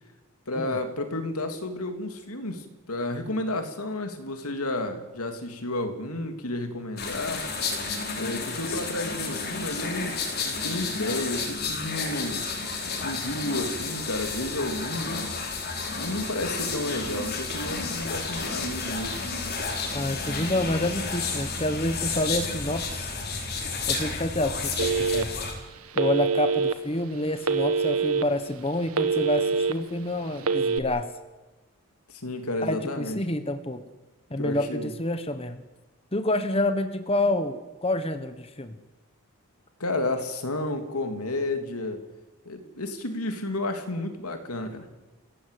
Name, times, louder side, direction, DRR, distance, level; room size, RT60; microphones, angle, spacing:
voice 1, 0.5-7.5 8.2-12.4 13.0-15.3 15.9-19.2 32.1-33.2 34.4-34.9 39.8-42.0 42.4-44.9, left 1 dB, 90° left, 6 dB, 3.2 m, -31 dB
sound 1, 7.0-25.5, left 4 dB, 45° left, 4.7 m, -31 dB
voice 2, 19.9-23.1 23.9-25.4 25.9-31.1 32.6-33.8 34.3-35.6 36.1-38.8, left 1 dB, 25° left, 9 dB, 1.3 m, -28 dB
Telephone, 24.8-25.5 25.9-26.7 27.4-28.2 28.7-29.7 30.4-30.8, right 4 dB, 80° right, 1.7 m, -24 dB
29.0 x 17.0 x 8.5 m, 1.1 s
head